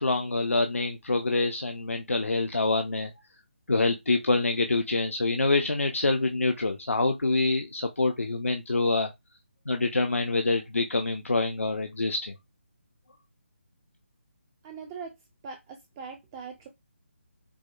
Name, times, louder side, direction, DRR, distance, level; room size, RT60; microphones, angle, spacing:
voice 1, 0.0-3.1 3.7-9.1 9.7-12.3, left 3 dB, 85° left, 0.5 m, -26 dB
voice 2, 14.6-15.1 15.4-16.7, right 5 dB, 15° right, 0.3 m, -41 dB
4.8 x 2.0 x 2.4 m
figure-of-eight pair, 150°, 7 cm